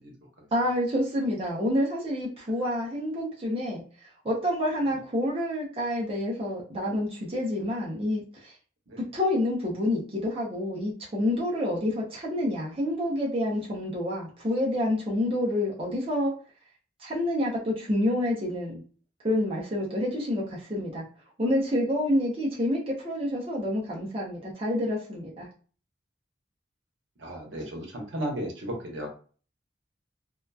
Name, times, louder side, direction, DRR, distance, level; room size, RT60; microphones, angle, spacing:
voice 1, 0.0-0.5 4.8-4.9 8.9-9.0 27.2-29.1, right 1 dB, 75° right, 0 dB, 0.9 m, -35 dB
voice 2, 0.5-3.8 4.2-8.5 9.1-16.3 17.0-18.8 19.2-21.0 21.4-25.5, left 1 dB, 30° right, -4 dB, 0.7 m, -28 dB
2.8 x 2.3 x 2.3 m, 0.39 s
head